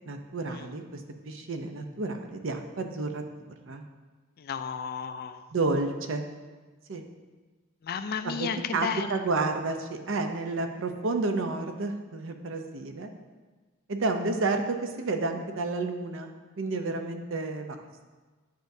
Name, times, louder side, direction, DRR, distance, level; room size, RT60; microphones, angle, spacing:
voice 1, 0.1-3.2 3.7-3.8 5.5-6.2 6.9-7.0 8.2-13.1 13.9-17.8, right 3 dB, 65° right, 6 dB, 0.6 m, -31 dB
voice 2, 4.4-5.4 7.8-9.2, left 7 dB, 45° left, 9 dB, 0.3 m, -33 dB
9.1 x 5.1 x 2.7 m, 1.3 s
head